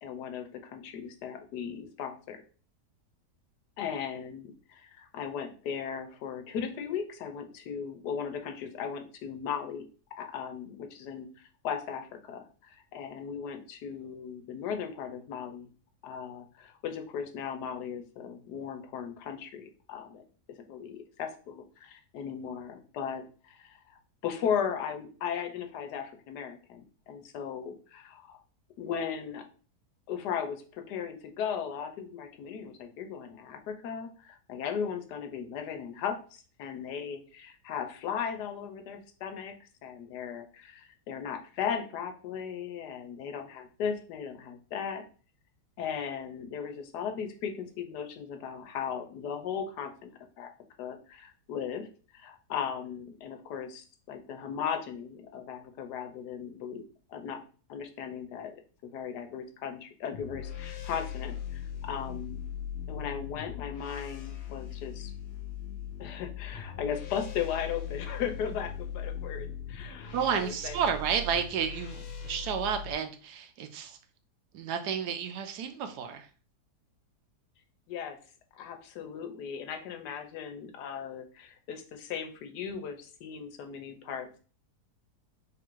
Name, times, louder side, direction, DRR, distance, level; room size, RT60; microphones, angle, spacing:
voice 1, 0.0-2.4 3.8-9.8 10.2-15.7 16.0-20.2 20.5-28.4 28.8-29.4 30.1-45.0 45.8-50.5 50.8-51.9 52.1-56.8 57.1-57.4 57.7-62.4 62.9-65.1 66.0-70.8 77.9-78.2 78.5-84.4, left 7 dB, 85° left, 6 dB, 1.3 m, -37 dB
sound 1, 60.1-72.9, left 6 dB, 65° left, 0.7 m, -39 dB
voice 2, 70.1-74.0 74.5-76.3, right 7 dB, 85° right, 7 dB, 1.2 m, -31 dB
3.6 x 2.5 x 4.5 m, 0.39 s
omnidirectional pair, 1.7 m